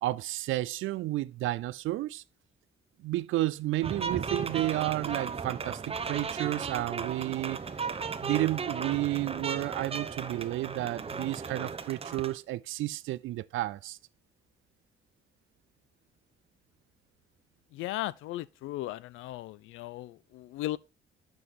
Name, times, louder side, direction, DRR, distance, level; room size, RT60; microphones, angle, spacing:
voice 1, 0.0-2.2 3.0-7.6 8.2-14.0, right 16 dB, 80° right, 0.5 m, -31 dB
sound 1, 3.8-12.4, right 5 dB, 30° right, 0.8 m, -35 dB
voice 2, 17.7-20.8, left 15 dB, 90° left, 0.4 m, -36 dB
7.1 x 6.2 x 4.2 m
cardioid pair, 90°, 20 cm